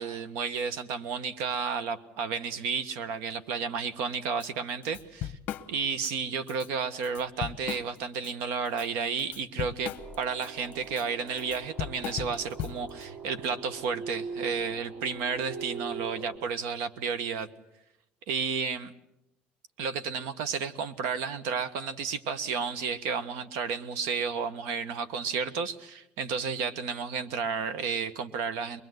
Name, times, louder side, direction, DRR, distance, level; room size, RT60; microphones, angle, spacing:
voice 1, 0.0-5.4 5.7-17.5 18.3-18.9 19.8-28.8, right 5 dB, 80° right, 12 dB, 1.5 m, -32 dB
Drum kit / Drum, 4.4-4.5 4.8-6.1 6.5-6.7 7.0-8.3 8.7-13.0, left 11 dB, 50° left, 1.0 m, -37 dB
sound 1, 10.0-16.4, right 5 dB, 35° right, 3.1 m, -41 dB
23.0 x 21.5 x 8.1 m, 0.84 s
cardioid pair, 150°, 4 cm